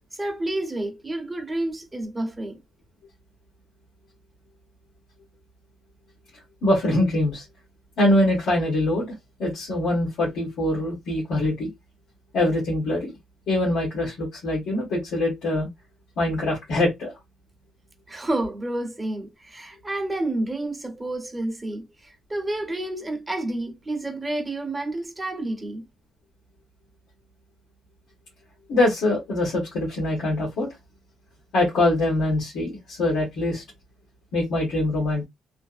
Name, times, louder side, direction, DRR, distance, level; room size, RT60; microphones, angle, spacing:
voice 1, 0.1-2.6 18.1-25.9, right 1 dB, 20° right, 0.9 m, -30 dB
voice 2, 6.6-7.4 8.0-9.1 9.4-11.7 12.3-13.1 13.5-15.7 16.2-17.1 28.7-30.7 31.5-33.6 34.3-35.2, left 1 dB, 75° left, 1.6 m, -23 dB
3.3 x 2.0 x 2.4 m
cardioid pair, 90°, 0 cm